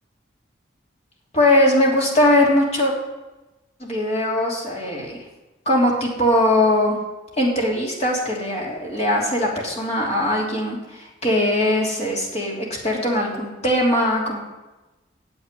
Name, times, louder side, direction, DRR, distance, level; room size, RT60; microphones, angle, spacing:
voice 1, 1.3-2.9 3.8-5.2 5.6-7.0 7.4-14.4, left 1 dB, 35° left, -3 dB, 3.1 m, -20 dB
9.7 x 7.9 x 9.2 m, 1.1 s
head